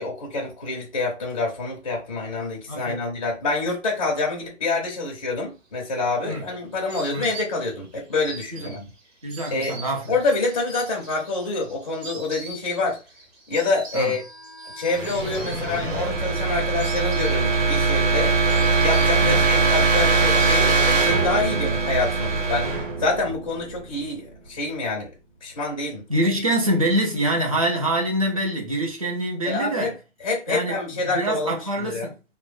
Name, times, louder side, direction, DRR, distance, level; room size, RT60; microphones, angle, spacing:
voice 1, 0.0-8.9 9.5-9.8 10.1-13.0 13.5-14.2 14.8-18.3 18.8-22.7 23.0-25.1 25.4-26.0 29.4-29.9 30.2-32.1, left 3 dB, 30° left, 0.5 m, -27 dB
voice 2, 2.7-3.0 6.2-6.4 7.1-7.3 8.5-8.7 9.2-10.1 13.9-14.1 19.2-19.4 26.1-29.9 30.5-30.8 31.1-32.1, right 1 dB, 30° right, 0.5 m, -25 dB
Insect, 5.7-21.5 21.7-22.5, right 3 dB, 55° right, 1.0 m, -43 dB
sound 1, 14.2-24.0, right 4 dB, 85° right, 1.2 m, -22 dB
2.1 x 2.0 x 3.1 m
hypercardioid pair, 170°, 38 cm